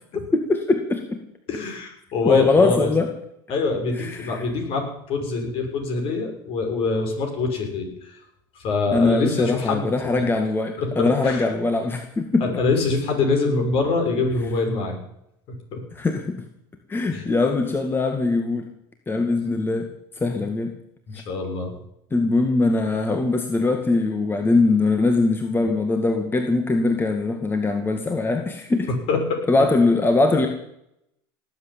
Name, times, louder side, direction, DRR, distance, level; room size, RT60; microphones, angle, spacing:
voice 1, 0.3-1.2 2.2-3.1 3.9-4.5 8.9-12.5 15.9-16.5 16.9-18.7 19.1-20.8 21.1-21.2 22.1-28.9 29.5-30.5, left 3 dB, 20° left, 5 dB, 2.1 m, -21 dB
voice 2, 1.5-2.9 3.5-8.2 8.6-10.2 10.8-11.4 12.4-15.0 15.5-15.8 17.1-17.2 21.1-21.7 28.9-29.4, left 3 dB, 55° left, 3 dB, 6.2 m, -24 dB
18.5 x 8.3 x 9.0 m, 0.78 s
supercardioid pair, 100°, 11 cm